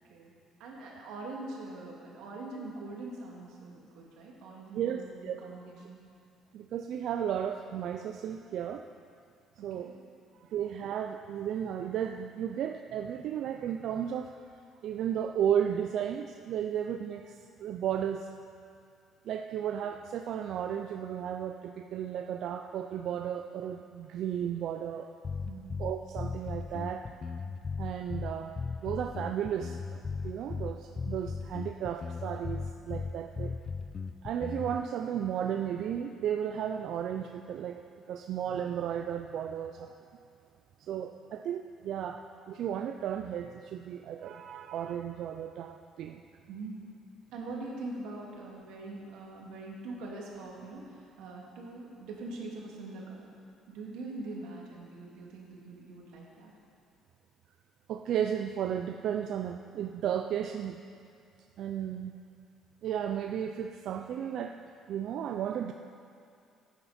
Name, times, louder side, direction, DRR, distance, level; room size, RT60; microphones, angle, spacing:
voice 1, 0.6-6.0 9.6-9.9 25.5-25.7 46.5-46.8 47.3-53.3 53.7-56.5, right 2 dB, 85° right, -2 dB, 2.5 m, -43 dB
voice 2, 4.7-5.4 6.5-8.8 9.6-9.9 10.4-14.4 14.8-18.3 19.2-25.1 25.8-27.1 27.8-28.5 28.8-33.6 34.2-37.8 38.1-40.0 40.8-46.2 57.9-60.8 61.6-62.1 62.8-64.6 64.9-65.7, right 9 dB, 60° right, 5 dB, 0.4 m, -34 dB
sound 1, 25.2-34.8, left 5 dB, 30° left, 0.4 m, -37 dB
15.0 x 9.6 x 4.3 m, 2.5 s
cardioid pair, 140°, 0 cm